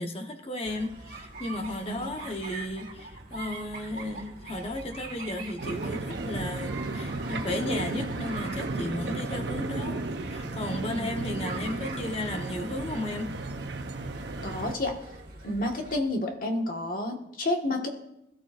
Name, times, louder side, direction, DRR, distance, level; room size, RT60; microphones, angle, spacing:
voice 1, 0.0-13.4, left 1 dB, 30° left, 1.1 m, -34 dB
sound 1, 0.6-16.0, right 3 dB, 50° right, 1.9 m, -43 dB
sound 2, 5.6-14.8, right 2 dB, 70° right, 0.9 m, -34 dB
voice 2, 14.4-15.0 15.4-17.9, left 1 dB, 45° left, 1.7 m, -30 dB
21.5 x 12.0 x 2.6 m
head